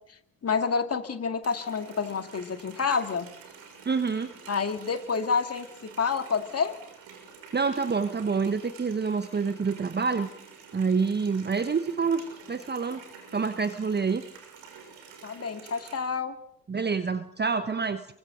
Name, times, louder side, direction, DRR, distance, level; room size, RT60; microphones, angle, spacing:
voice 1, 0.4-3.3 4.5-6.7 15.2-16.3, left 5 dB, 30° left, 7 dB, 2.3 m, -28 dB
Water tap faucet, 1.4-15.9, right 6 dB, 60° right, 6.4 m, -49 dB
voice 2, 3.8-4.3 7.5-10.3 10.7-13.0 13.3-14.2 16.7-18.1, right 5 dB, 20° right, 10 dB, 1.2 m, -27 dB
30.0 x 24.0 x 3.9 m, 0.68 s
figure-of-eight pair, 55°, 47 cm